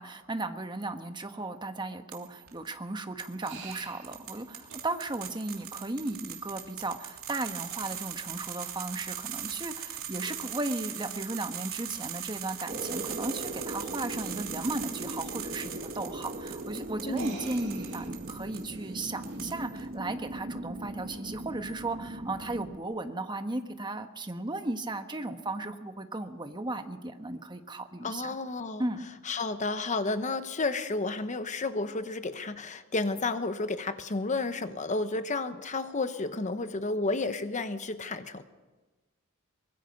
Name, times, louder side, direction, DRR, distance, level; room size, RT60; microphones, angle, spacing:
voice 1, 0.0-28.4 28.8-29.0, right 2 dB, 20° right, 7 dB, 1.3 m, -35 dB
sound 1, 2.1-2.5 3.2-18.6 19.0-19.8, right 10 dB, 70° right, 3.1 m, -40 dB
sound 2, 3.4-4.1 4.7-4.8 6.9-7.1 10.2-10.4 11.9-12.0 12.4-12.5 12.8-12.9 15.9-16.0 17.0-19.4, right 4 dB, 90° right, 4.9 m, -46 dB
sound 3, 12.7-22.8, right 1 dB, 40° right, 1.3 m, -39 dB
voice 2, 17.1-17.4 28.0-28.8 29.3-38.4, left 3 dB, 35° left, 10 dB, 1.0 m, -31 dB
23.5 x 21.0 x 5.4 m, 1.2 s
head